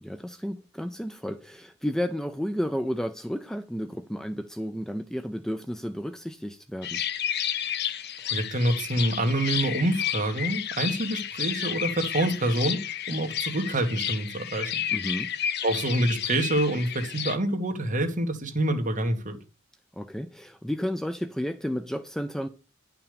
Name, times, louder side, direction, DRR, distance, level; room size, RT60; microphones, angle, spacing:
voice 1, 0.0-7.0 14.9-15.3 19.9-22.5, equal, ahead, 0.5 m, -32 dB
sound 1, 6.8-17.4, left 9 dB, 55° left, 0.8 m, -31 dB
voice 2, 8.3-14.8 15.6-19.4, right 1 dB, 40° right, 2.0 m, -27 dB
10.5 x 5.8 x 6.8 m
head